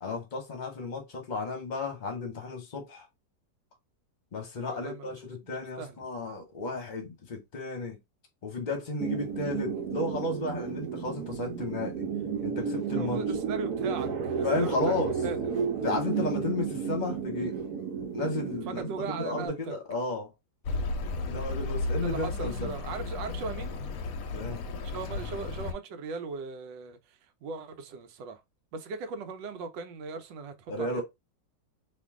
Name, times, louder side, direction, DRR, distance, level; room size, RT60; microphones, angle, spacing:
voice 1, 0.0-3.1 4.3-8.0 8.4-12.0 12.4-13.2 14.4-15.1 15.8-17.6 18.1-20.3 21.2-22.7 24.3-24.6 30.7-31.0, left 2 dB, 35° left, 0.8 m, -33 dB
voice 2, 4.7-5.2 5.4-6.0 12.8-15.4 18.7-19.7 22.0-23.7 24.8-28.4 28.7-31.0, right 4 dB, 85° right, 1.4 m, -38 dB
sound 1, 9.0-19.5, right 6 dB, 65° right, 1.2 m, -32 dB
Accelerating revving vroom, 20.6-25.7, left 3 dB, 65° left, 0.9 m, -34 dB
2.9 x 2.6 x 3.5 m
omnidirectional pair, 1.9 m